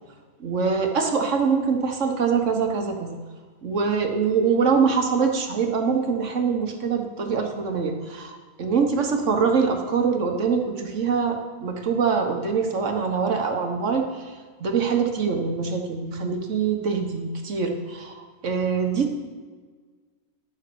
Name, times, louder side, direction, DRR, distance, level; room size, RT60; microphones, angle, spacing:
voice 1, 0.4-3.1 3.6-19.2, right 5 dB, 55° right, 4 dB, 1.4 m, -24 dB
11.5 x 5.5 x 6.8 m, 1.5 s
omnidirectional pair, 1.6 m